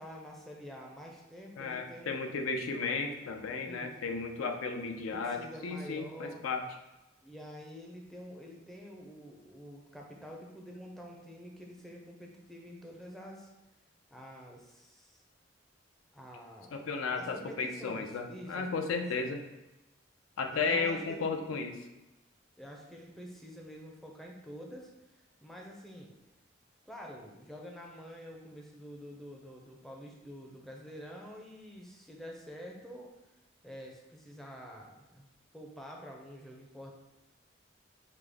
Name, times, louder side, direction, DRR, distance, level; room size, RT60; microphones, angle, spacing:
voice 1, 0.0-2.2 3.7-4.2 5.1-6.4 7.2-13.5 14.1-15.2 16.1-16.8 17.1-19.4 20.5-21.4 22.6-24.9 25.2-26.1 26.9-33.1 33.6-35.3 35.5-36.9, equal, ahead, -1 dB, 0.4 m, -47 dB
voice 2, 1.6-6.6 16.7-19.4 20.4-21.8, left 4 dB, 90° left, 5 dB, 0.4 m, -34 dB
5.0 x 2.0 x 3.4 m, 1.0 s
head